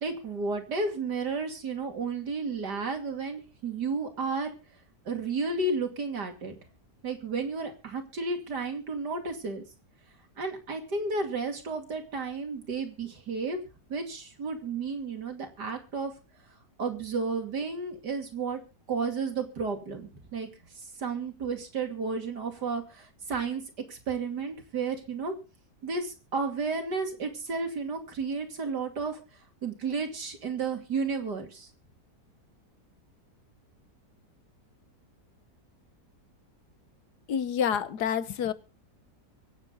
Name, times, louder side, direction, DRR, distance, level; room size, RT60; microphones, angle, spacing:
voice 1, 0.0-4.5 5.0-6.5 7.0-9.6 10.4-13.6 13.9-16.1 16.8-18.6 18.9-20.5 21.0-23.6 23.9-25.3 25.8-29.2 29.6-31.7, right 4 dB, 85° right, 5 dB, 3.2 m, -32 dB
voice 2, 37.3-38.5, left 8 dB, 80° left, 14 dB, 1.6 m, -28 dB
25.0 x 8.9 x 4.0 m, 0.33 s
omnidirectional pair, 1.7 m